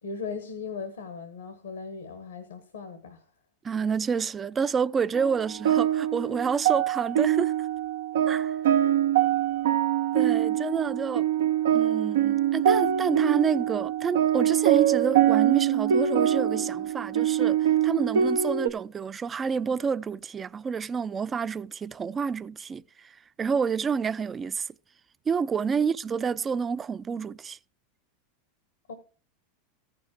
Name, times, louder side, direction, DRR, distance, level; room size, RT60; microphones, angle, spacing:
voice 1, 0.0-3.3 8.8-8.9 25.8-25.9 28.9-29.0, left 5 dB, 85° left, 1.1 m, -38 dB
voice 2, 3.6-7.7 8.3-8.6 10.1-11.3 11.7-24.7 25.3-27.6, right 6 dB, 25° right, 0.3 m, -29 dB
sound 1, 5.1-18.7, right 11 dB, 75° right, 0.6 m, -24 dB
14.0 x 5.2 x 4.6 m
hypercardioid pair, 95°, 0 cm